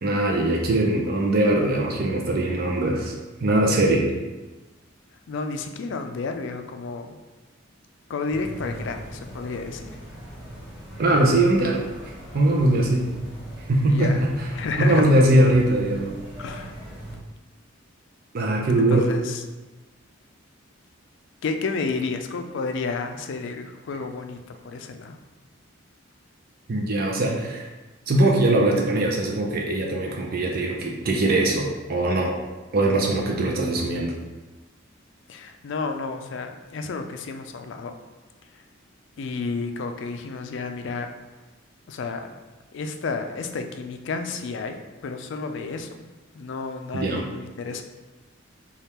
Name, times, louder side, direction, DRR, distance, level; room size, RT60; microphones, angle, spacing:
voice 1, 0.0-3.1 3.4-4.0 11.0-11.8 12.3-13.1 13.7-14.5 14.8-16.1 18.3-19.1 26.7-27.7 28.1-32.4 32.7-34.1 46.9-47.3, right 1 dB, 50° right, -1 dB, 0.5 m, -21 dB
voice 2, 5.3-7.2 8.1-9.9 13.9-14.2 14.5-15.1 16.4-16.7 18.8-19.4 21.4-25.2 35.3-37.9 38.5-38.6 39.2-41.1 41.9-42.3 42.7-44.8 45.0-46.0 46.3-47.8, left 4 dB, 65° left, 6 dB, 0.4 m, -31 dB
sound 1, 8.3-17.2, right 1 dB, 5° right, 1.2 m, -40 dB
3.5 x 2.4 x 4.2 m, 1.2 s
head